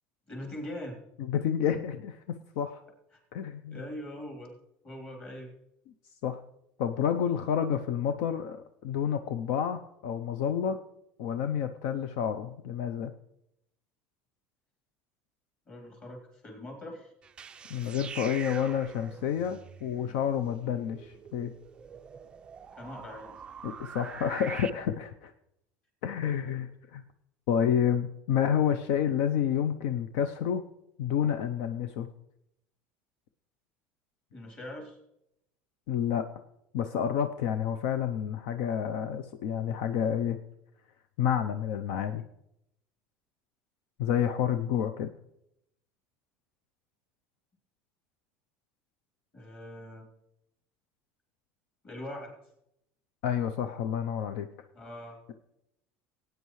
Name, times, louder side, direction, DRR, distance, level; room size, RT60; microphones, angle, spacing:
voice 1, 0.3-1.0 3.7-4.5 4.8-5.5 15.7-17.1 22.7-23.4 34.3-35.0 49.3-50.1 51.8-52.3 54.7-55.2, left 1 dB, 25° left, 1 dB, 3.2 m, -42 dB
voice 2, 1.3-2.8 3.3-3.8 6.2-6.4 6.8-10.8 11.2-13.1 17.7-21.5 23.6-25.3 26.0-27.0 27.5-30.6 31.0-32.1 35.9-36.3 36.7-40.4 41.2-42.2 44.0-45.1 53.2-54.5, left 8 dB, 70° left, 9 dB, 0.6 m, -29 dB
sound 1, 17.2-24.7, right 7 dB, 20° right, 0.3 m, -45 dB
18.5 x 9.2 x 3.1 m, 0.79 s
cardioid pair, 155°, 5 cm